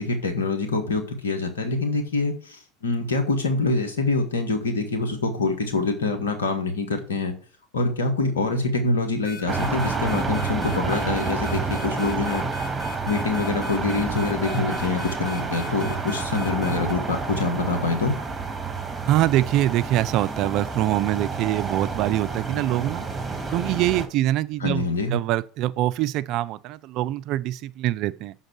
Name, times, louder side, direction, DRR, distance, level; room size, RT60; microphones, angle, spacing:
voice 1, 0.0-7.4 7.7-12.5 13.1-18.2 24.6-25.2, left 3 dB, 85° left, 1.4 m, -25 dB
sound 1, 9.2-16.9, left 1 dB, 30° left, 2.9 m, -39 dB
sound 2, 9.5-24.1, right 4 dB, 20° right, 1.8 m, -29 dB
voice 2, 19.1-23.1 23.5-28.3, right 14 dB, 55° right, 0.4 m, -24 dB
6.4 x 4.0 x 6.2 m
hypercardioid pair, 75°, 0 cm